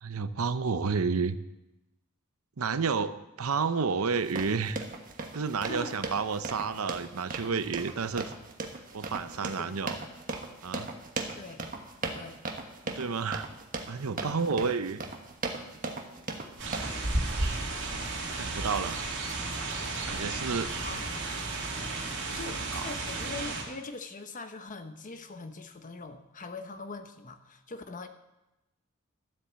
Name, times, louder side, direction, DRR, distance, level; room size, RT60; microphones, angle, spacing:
voice 1, 0.0-1.4 2.6-4.8 5.3-8.3 8.9-10.0 10.6-10.9 12.9-13.5 13.9-15.0 17.3-17.6 18.3-19.0 20.0-21.0 22.3-22.4 22.7-22.9, right 5 dB, 85° right, 12 dB, 0.7 m, -31 dB
sound 1, 4.1-17.1, right 3 dB, 40° right, 1.4 m, -38 dB
voice 2, 5.7-6.0 9.6-9.8 11.4-11.6 12.0-12.4 14.1-14.7 20.8-21.3 22.3-28.1, left 3 dB, 40° left, 8 dB, 1.1 m, -42 dB
sound 2, 16.6-23.6, right 2 dB, 60° right, 2.9 m, -33 dB
12.5 x 8.3 x 7.5 m, 0.96 s
head